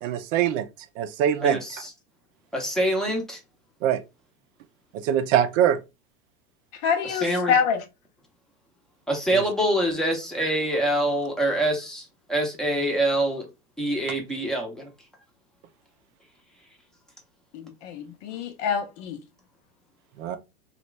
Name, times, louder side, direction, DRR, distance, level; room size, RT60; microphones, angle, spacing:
voice 1, 0.0-0.6 1.0-1.6 3.8-4.0 5.0-5.8 9.3-9.5 20.2-20.4, right 10 dB, 60° right, 0.6 m, -22 dB
voice 2, 1.4-1.9 2.5-3.4 7.0-7.5 9.1-13.5 13.8-14.8, right 1 dB, ahead, 0.7 m, -25 dB
voice 3, 6.8-7.8 17.5-19.2, left 7 dB, 50° left, 0.8 m, -26 dB
2.9 x 2.5 x 3.1 m
supercardioid pair, 125°, 44 cm